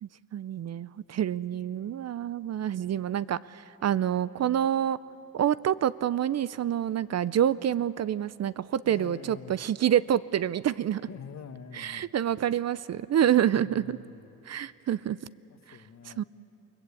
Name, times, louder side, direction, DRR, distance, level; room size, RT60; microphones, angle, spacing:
voice 1, 0.0-5.0 5.3-11.0 11.7-14.0 14.5-15.2 15.7-15.8 16.1-16.2, right 10 dB, 45° right, 17 dB, 0.6 m, -27 dB
voice 2, 8.8-9.5 11.1-12.1 13.5-14.4 15.5-16.2, left 7 dB, 50° left, 9 dB, 1.4 m, -46 dB
28.5 x 20.0 x 8.4 m, 2.8 s
cardioid pair, 95°, 36 cm